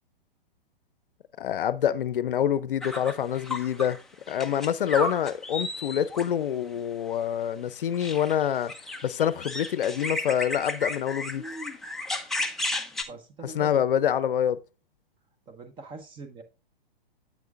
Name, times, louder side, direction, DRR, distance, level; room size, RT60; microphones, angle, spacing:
voice 1, 1.4-4.0 4.3-8.7 9.0-11.4 13.4-14.6, left 9 dB, 65° left, 0.6 m, -26 dB
sound 1, 2.8-4.0 4.3-6.3 7.9-13.0, left 2 dB, ahead, 0.4 m, -33 dB
voice 2, 13.1-13.8 15.5-16.4, right 4 dB, 15° right, 0.9 m, -42 dB
9.2 x 7.6 x 2.4 m
figure-of-eight pair, 120°, 29 cm